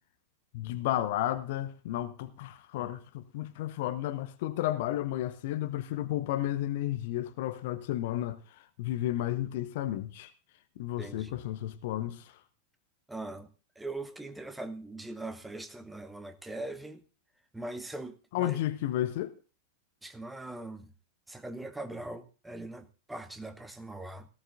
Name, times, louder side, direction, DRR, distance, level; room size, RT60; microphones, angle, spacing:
voice 1, 0.5-10.3 10.8-12.4 18.3-19.4, left 13 dB, 50° left, 0.8 m, -32 dB
voice 2, 11.0-11.4 13.1-13.5 13.8-17.0 17.5-18.6 20.0-20.9 21.3-24.3, right 2 dB, 5° right, 1.0 m, -41 dB
18.0 x 14.0 x 2.6 m
figure-of-eight pair, 90°, 0 cm